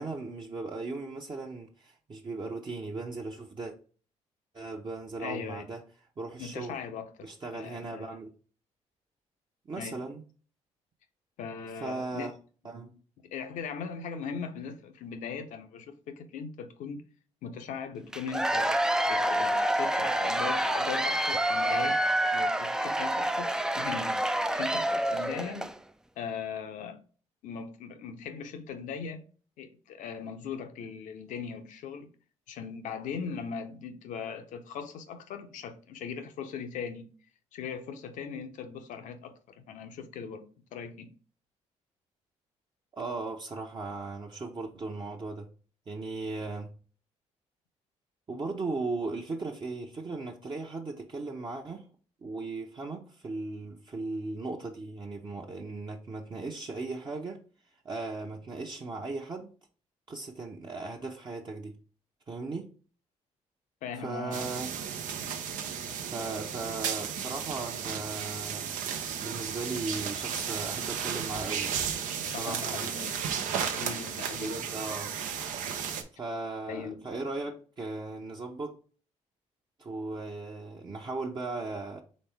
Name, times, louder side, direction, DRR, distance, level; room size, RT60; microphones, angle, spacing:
voice 1, 0.0-3.7 4.5-5.8 6.2-6.8 7.2-8.3 9.7-10.2 11.8-12.3 12.6-12.9 42.9-45.5 45.9-46.7 48.3-51.8 52.2-57.4 57.8-59.5 60.1-61.7 62.3-62.7 64.0-64.7 66.0-68.7 69.2-71.7 72.3-72.9 74.4-75.2 76.1-78.8 79.8-82.0, right 3 dB, 35° right, 0.8 m, -37 dB
voice 2, 5.2-5.7 6.4-8.2 9.8-10.0 11.4-12.3 13.2-17.0 17.4-18.7 19.1-22.0 22.3-24.2 24.5-25.7 26.2-27.0 27.4-29.2 29.6-32.1 32.5-37.1 37.5-40.5 40.7-41.1 63.8-64.5 72.2-73.3 73.6-74.7 76.7-76.9, left 6 dB, 75° left, 0.8 m, -39 dB
Cheering / Applause / Crowd, 18.1-25.8, right 1 dB, 5° right, 0.3 m, -28 dB
sound 1, 64.3-76.0, right 8 dB, 85° right, 0.6 m, -34 dB
4.2 x 3.4 x 3.4 m
supercardioid pair, 65°, 13 cm